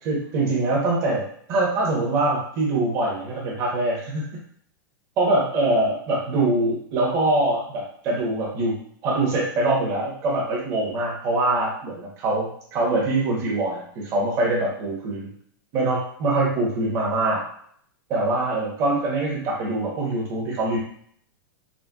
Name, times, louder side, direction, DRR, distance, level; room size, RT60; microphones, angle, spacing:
voice 1, 0.0-4.2 5.2-15.3 15.7-17.4 18.1-20.8, right 2 dB, 25° right, -3 dB, 0.8 m, -24 dB
3.8 x 2.2 x 2.2 m, 0.63 s
supercardioid pair, 175°, 12 cm